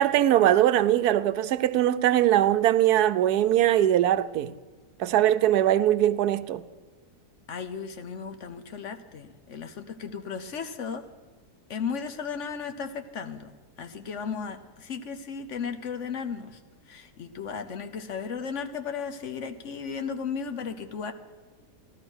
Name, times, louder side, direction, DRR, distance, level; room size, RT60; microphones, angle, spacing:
voice 1, 0.0-4.5 5.0-6.6, right 12 dB, 80° right, 1.1 m, -21 dB
voice 2, 7.5-11.0 11.7-13.5 13.8-16.6 16.9-21.1, left 6 dB, 55° left, 1.0 m, -35 dB
16.0 x 12.5 x 6.2 m
omnidirectional pair, 1.6 m